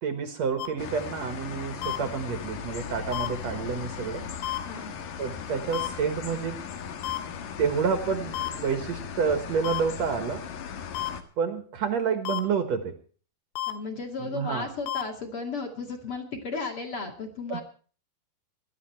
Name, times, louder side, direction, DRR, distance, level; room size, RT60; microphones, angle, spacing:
voice 1, 0.0-4.3 5.2-6.7 7.6-10.5 11.4-13.0 14.2-14.7 17.5-17.6, right 6 dB, 60° right, 9 dB, 2.0 m, -29 dB
sound 1, 0.6-0.7 1.8-2.0 3.1-3.3 4.4-4.6 5.7-5.9 7.0-7.2 8.3-8.5 9.6-9.8 10.9-11.1 12.2-12.4 13.6-13.7 14.9-15.0, left 15 dB, 80° left, 3.5 m, -30 dB
sound 2, 0.8-11.2, left 7 dB, 65° left, 2.9 m, -38 dB
voice 2, 13.7-17.6, left 4 dB, 40° left, 3 dB, 2.9 m, -34 dB
18.5 x 12.5 x 4.5 m, 0.40 s
omnidirectional pair, 4.5 m